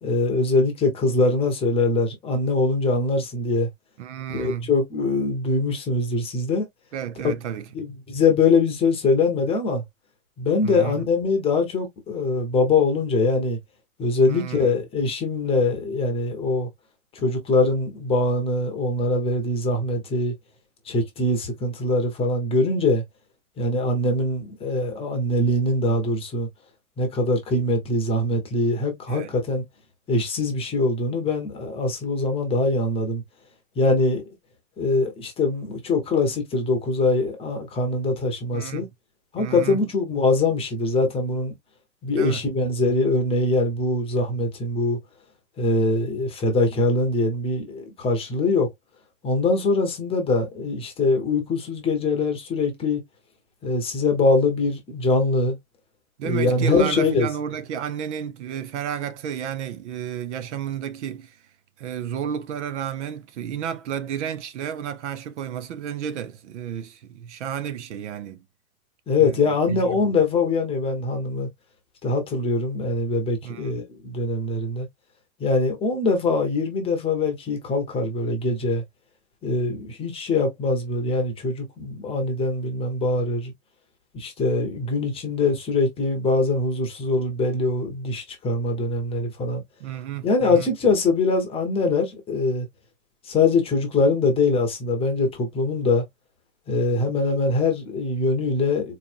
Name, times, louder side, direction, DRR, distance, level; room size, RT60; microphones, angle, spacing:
voice 1, 0.0-3.7 4.3-6.6 7.2-7.3 7.7-9.8 10.4-13.6 14.0-16.7 17.1-20.3 20.9-23.0 23.6-26.5 27.0-29.6 30.1-33.2 33.8-34.2 34.8-38.9 39.3-41.5 42.0-45.0 45.6-48.7 49.2-53.0 53.6-55.6 56.2-57.3 69.1-71.5 72.0-74.9 75.4-78.8 79.4-83.5 84.1-89.6 90.2-92.7 93.2-96.0 96.7-98.9, left 3 dB, 15° left, 0.9 m, -23 dB
voice 2, 4.0-4.7 6.9-7.7 10.6-11.0 14.3-14.8 29.1-29.3 38.5-38.9 39.4-39.8 42.2-42.4 56.2-61.4 61.8-68.4 69.2-70.2 73.4-73.7 89.8-90.7, right 9 dB, 55° right, 0.7 m, -32 dB
4.1 x 3.2 x 2.5 m
hypercardioid pair, 150°, 42 cm